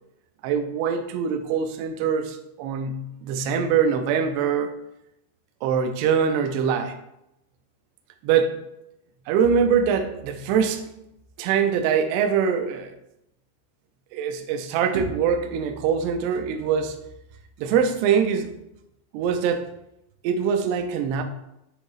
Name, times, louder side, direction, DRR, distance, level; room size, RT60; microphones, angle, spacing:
voice 1, 0.4-4.7 5.6-7.0 8.2-8.6 9.3-10.8 11.4-13.0 14.1-17.0 17.6-18.5 19.1-19.7 20.2-21.2, right 7 dB, 80° right, 6 dB, 2.6 m, -23 dB
10.0 x 3.5 x 3.1 m, 0.84 s
omnidirectional pair, 5.1 m